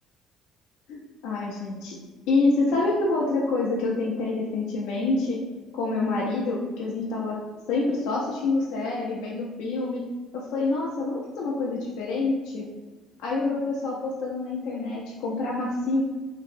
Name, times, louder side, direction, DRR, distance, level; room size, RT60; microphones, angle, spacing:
voice 1, 0.9-2.0 2.3-5.4 5.7-7.4 7.7-10.0 10.3-12.7 13.2-16.0, left 3 dB, 80° left, -4 dB, 0.5 m, -27 dB
2.9 x 2.6 x 2.5 m, 1.3 s
cardioid pair, 140°, 0 cm